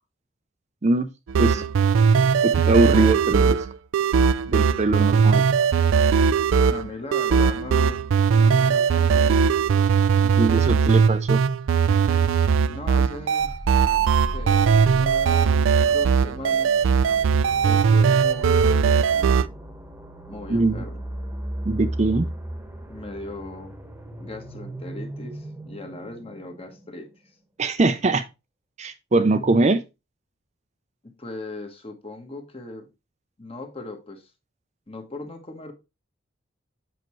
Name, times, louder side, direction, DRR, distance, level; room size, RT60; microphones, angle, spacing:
sound 1, 1.3-19.5, right 6 dB, 90° right, 0.4 m, -19 dB
voice 1, 2.4-3.6 4.5-5.4 10.4-11.4 20.5-20.8 21.6-22.3 27.6-28.2 28.8-29.8, right 2 dB, 35° right, 0.5 m, -21 dB
voice 2, 6.7-9.5 12.7-13.6 14.3-16.9 17.6-19.5 20.3-21.0 22.9-23.7 24.2-27.1 31.0-32.9 33.4-34.3 34.9-35.7, left 2 dB, 30° left, 1.3 m, -38 dB
sound 2, 13.4-27.2, right 1 dB, 10° right, 1.1 m, -36 dB
7.7 x 5.8 x 3.1 m
head